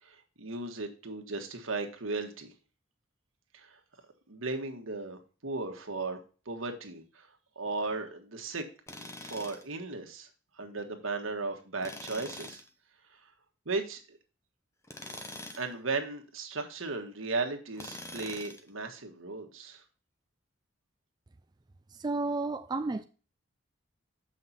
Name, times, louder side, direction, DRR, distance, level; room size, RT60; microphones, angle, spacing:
voice 1, 0.0-2.5 3.5-3.8 4.3-6.2 6.4-8.6 9.2-10.3 10.5-12.6 13.1-13.3 13.6-14.2 15.6-19.8, right 3 dB, 80° right, 1.6 m, -36 dB
Tools, 8.9-9.7 11.8-12.7 14.8-15.7 17.8-18.7, left 1 dB, 15° left, 0.7 m, -44 dB
voice 2, 21.9-23.0, right 3 dB, 20° right, 0.3 m, -32 dB
7.6 x 5.8 x 4.1 m
head